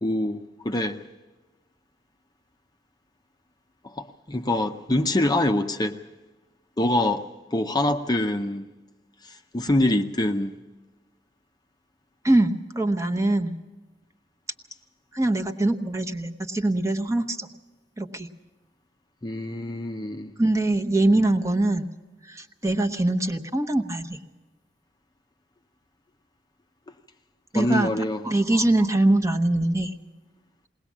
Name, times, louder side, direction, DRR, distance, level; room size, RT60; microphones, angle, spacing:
voice 1, 0.0-1.0 3.8-6.0 6.8-7.2 7.5-8.7 9.2-10.5 19.2-20.3 27.5-28.2, left 1 dB, 25° left, 0.7 m, -25 dB
voice 2, 12.2-13.6 15.1-17.5 18.0-18.3 20.4-21.9 22.2-24.2 27.5-29.9, right 1 dB, 15° right, 0.9 m, -23 dB
21.0 x 18.5 x 7.3 m
head